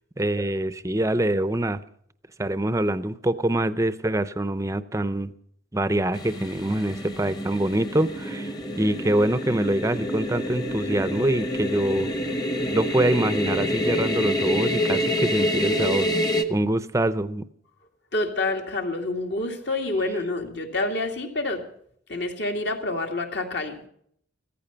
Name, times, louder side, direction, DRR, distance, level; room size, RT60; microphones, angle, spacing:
voice 1, 0.2-1.8 2.4-5.3 5.7-12.1 12.7-16.1 16.5-17.4, right 1 dB, 15° right, 14 dB, 0.6 m, -25 dB
sound 1, 6.1-16.4, equal, 20° left, 1.1 m, -27 dB
voice 2, 18.1-21.6 22.1-23.8, left 2 dB, 60° left, 3 dB, 2.5 m, -27 dB
16.0 x 14.0 x 5.7 m, 0.65 s
head